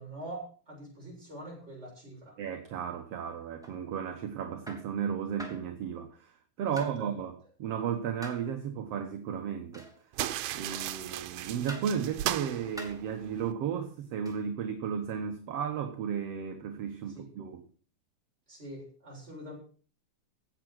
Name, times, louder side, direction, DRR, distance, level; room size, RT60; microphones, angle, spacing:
voice 1, 0.0-2.4 6.7-7.1 17.1-17.3 18.5-19.6, right 1 dB, 20° right, -2 dB, 7.5 m, -44 dB
voice 2, 2.4-9.9 10.5-17.7, right 8 dB, 60° right, 6 dB, 2.1 m, -34 dB
sound 1, 3.6-3.8 4.7-4.9 5.4-5.7 6.8-7.0 8.2-8.5 9.7-10.0 10.7-11.0 11.7-12.0 12.8-13.1 14.2-14.5, right 1 dB, ahead, 2.8 m, -45 dB
sound 2, 10.1-13.5, right 13 dB, 85° right, 2.3 m, -36 dB
17.0 x 7.7 x 6.4 m, 0.41 s
omnidirectional pair, 3.6 m